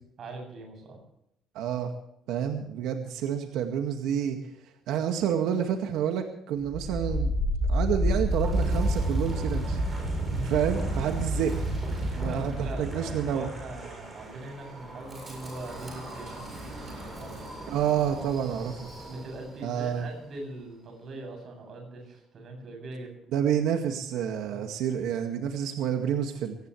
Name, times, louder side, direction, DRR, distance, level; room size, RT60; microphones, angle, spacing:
voice 1, 0.2-1.0 10.2-10.6 12.3-16.5 17.0-17.4 19.0-23.2 24.4-24.6, right 2 dB, 40° right, 2 dB, 7.9 m, -41 dB
voice 2, 1.6-1.9 2.3-4.4 4.9-7.3 7.7-9.8 10.4-13.5 17.7-18.7 19.6-20.1 23.3-26.6, right 9 dB, 90° right, 4 dB, 2.0 m, -29 dB
Wind, 6.7-19.6, equal, 15° right, 7.6 m, -31 dB
22.5 x 18.5 x 3.3 m, 0.77 s
cardioid pair, 180°, 0 cm